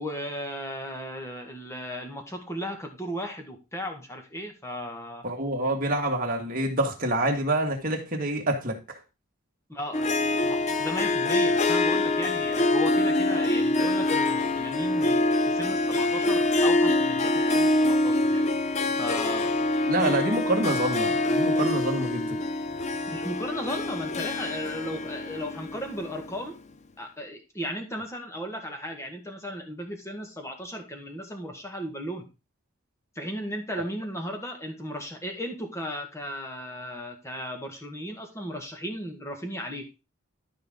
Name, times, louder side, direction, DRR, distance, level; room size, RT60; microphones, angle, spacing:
voice 1, 0.0-5.2 9.7-10.1 10.4-18.4 19.0-19.5 23.1-26.6 27.0-32.3 33.2-39.8, equal, 15° left, 1.7 m, -35 dB
voice 2, 5.2-9.0 19.9-22.4, right 1 dB, 40° right, 1.9 m, -27 dB
Harp, 9.9-26.4, left 2 dB, 30° left, 0.6 m, -25 dB
12.5 x 5.2 x 3.7 m
head